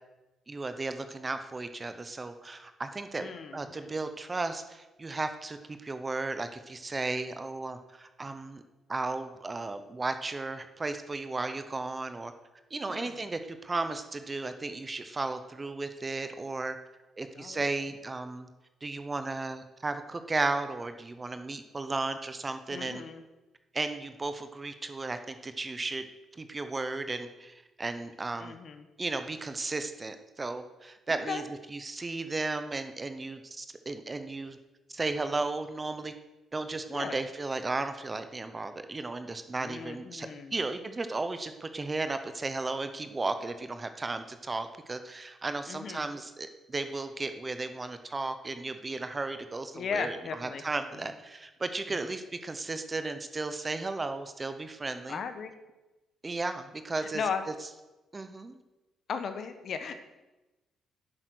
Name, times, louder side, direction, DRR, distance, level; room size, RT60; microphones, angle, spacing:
voice 1, 0.5-8.6 8.9-12.3 12.7-16.8 17.2-18.5 18.8-23.0 23.7-26.1 26.3-28.6 29.0-31.4 31.7-34.6 34.9-36.1 36.5-50.2 50.4-55.2 56.2-57.2 58.1-58.6, right 3 dB, 20° right, 9 dB, 0.7 m, -35 dB
voice 2, 3.2-3.9 12.9-13.2 17.3-17.6 22.7-23.2 28.4-28.9 31.1-31.4 36.9-37.2 39.6-40.6 45.7-46.1 49.7-50.6 51.9-52.0 55.1-55.5 57.0-57.4 59.1-60.0, left 6 dB, 50° left, 9 dB, 1.1 m, -36 dB
10.5 x 8.9 x 6.3 m, 1.1 s
cardioid pair, 150°, 0 cm